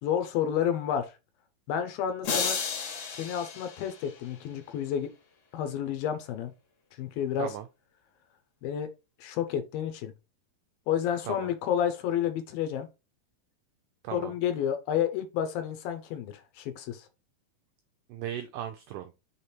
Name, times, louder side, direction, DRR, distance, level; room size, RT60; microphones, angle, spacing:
voice 1, 0.0-1.1 1.7-2.6 3.1-5.1 5.5-6.5 7.0-7.5 8.6-8.9 9.2-10.1 10.9-12.9 14.1-17.1, left 9 dB, 80° left, 2.7 m, -30 dB
sound 1, 2.2-4.5, left 6 dB, 60° left, 2.7 m, -33 dB
voice 2, 14.0-14.3 18.1-19.1, right 11 dB, 85° right, 1.8 m, -37 dB
6.3 x 3.5 x 4.4 m
omnidirectional pair, 4.3 m